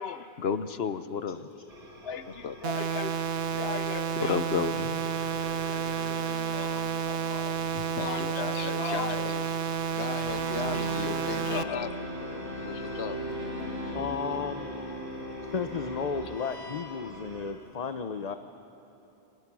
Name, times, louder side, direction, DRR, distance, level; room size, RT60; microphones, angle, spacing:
voice 1, 0.0-1.5 2.0-3.1 3.5-5.0 5.7-5.8 6.1-6.2 6.5-7.6 8.0-9.3 11.5-11.9 12.4-12.5 13.6-13.8, left 6 dB, 70° left, 11 dB, 1.1 m, -34 dB
sound 1, 1.7-17.5, right 2 dB, 55° right, 3.1 m, -46 dB
voice 2, 2.3-2.8 7.7-9.4 9.9-13.2, left 7 dB, 90° left, 12 dB, 1.2 m, -38 dB
sound 2, 2.6-11.6, right 7 dB, 85° right, 1.1 m, -31 dB
sound 3, 10.3-16.8, equal, 20° right, 6.0 m, -37 dB
voice 3, 13.9-14.7 15.4-18.4, left 5 dB, 40° left, 8 dB, 0.8 m, -33 dB
29.5 x 28.0 x 6.2 m, 3.0 s
omnidirectional pair, 1.1 m